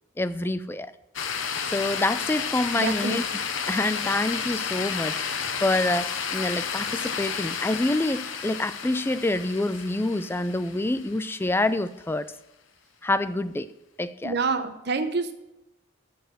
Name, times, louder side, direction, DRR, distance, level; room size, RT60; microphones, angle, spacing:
voice 1, 0.2-0.9 1.7-5.2 5.6-12.3 13.0-13.7 14.0-14.3, left 2 dB, 10° left, 13 dB, 0.4 m, -27 dB
sound 1, 1.2-11.4, left 6 dB, 80° left, 1.0 m, -31 dB
voice 2, 2.8-3.2 14.2-15.3, right 4 dB, 55° right, 8 dB, 0.9 m, -27 dB
7.9 x 6.7 x 7.6 m, 0.91 s
head